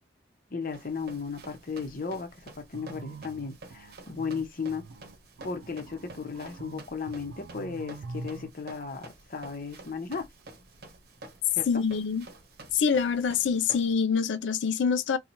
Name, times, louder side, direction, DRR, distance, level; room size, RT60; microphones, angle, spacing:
voice 1, 0.5-4.8 5.4-10.2 11.5-11.7, left 5 dB, 50° left, 0.9 m, -35 dB
Run, 0.7-13.9, right 2 dB, 60° right, 0.8 m, -50 dB
sound 1, 2.7-8.5, right 3 dB, 90° right, 0.4 m, -44 dB
voice 2, 11.7-12.3 12.7-15.2, left 6 dB, 80° left, 0.4 m, -25 dB
2.9 x 2.3 x 4.1 m
head